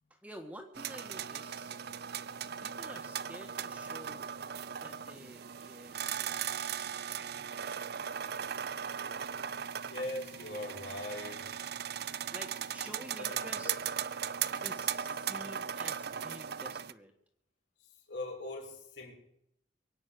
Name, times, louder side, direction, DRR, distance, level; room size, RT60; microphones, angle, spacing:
voice 1, 0.1-1.8 2.6-4.3 4.8-6.4 12.3-13.9 14.6-17.1, equal, 5° right, 4 dB, 1.4 m, -50 dB
sound 1, 0.7-16.9, right 8 dB, 50° right, 0.5 m, -38 dB
voice 2, 9.8-11.4 13.2-13.8 18.1-19.1, left 2 dB, 60° left, -1 dB, 4.1 m, -41 dB
23.0 x 9.3 x 6.7 m, 0.75 s
head